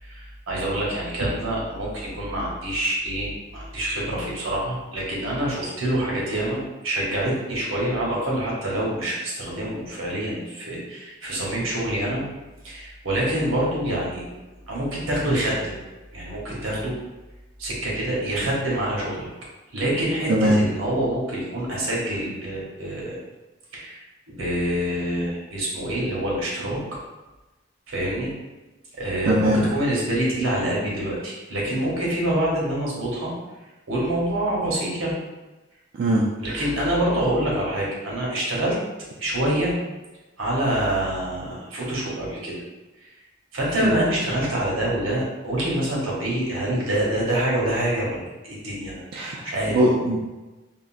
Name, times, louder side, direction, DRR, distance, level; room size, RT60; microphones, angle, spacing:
voice 1, 0.0-12.2 12.6-14.3 14.7-15.7 16.1-16.9 17.6-19.3 19.7-23.2 23.7-27.0 27.9-28.3 28.9-33.3 33.9-35.1 36.4-38.8 39.2-39.7 40.4-42.5 43.0-43.1 43.5-49.8, right 1 dB, 90° right, -5 dB, 1.0 m, -26 dB
voice 2, 29.3-29.6 36.0-36.6 43.8-43.9 49.1-49.4 49.7-50.2, right 1 dB, 50° right, -3 dB, 0.3 m, -21 dB
3.6 x 2.0 x 2.5 m, 1.1 s
head